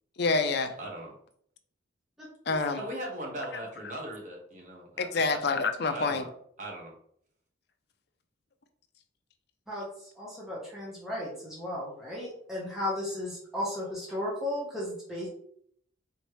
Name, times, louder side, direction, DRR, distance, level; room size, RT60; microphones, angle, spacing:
voice 1, 0.2-0.8 2.5-2.8 5.0-6.2, left 3 dB, 55° left, 8 dB, 0.5 m, -27 dB
voice 2, 0.8-1.1 2.8-5.4 5.9-6.3 6.6-6.9, right 1 dB, 40° right, -1 dB, 1.1 m, -39 dB
voice 3, 2.2-2.6 9.7-9.9 10.2-15.3, left 1 dB, ahead, -7 dB, 1.0 m, -35 dB
4.7 x 3.1 x 3.1 m, 0.64 s
head